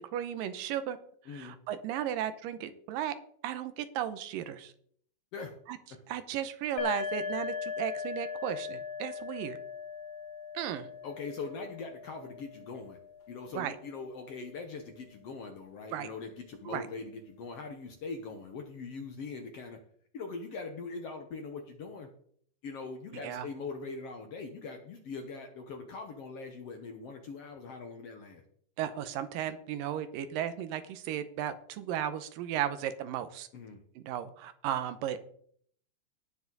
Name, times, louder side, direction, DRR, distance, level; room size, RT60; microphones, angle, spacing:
voice 1, 0.1-1.0 1.2-3.2 3.4-4.7 5.7-5.8 6.1-9.6 10.5-10.9 13.5-13.8 15.9-16.1 16.7-16.8 23.1-23.5 28.8-33.5 34.0-35.2, right 10 dB, 85° right, 11 dB, 2.5 m, -35 dB
voice 2, 1.3-1.6 5.3-5.5 11.0-13.0 13.3-19.8 20.1-22.1 22.6-28.4 33.5-33.8, left 4 dB, 60° left, 4 dB, 1.7 m, -42 dB
sound 1, 6.8-14.3, left 6 dB, 80° left, 2.8 m, -39 dB
18.0 x 7.2 x 4.0 m, 0.62 s
omnidirectional pair, 4.0 m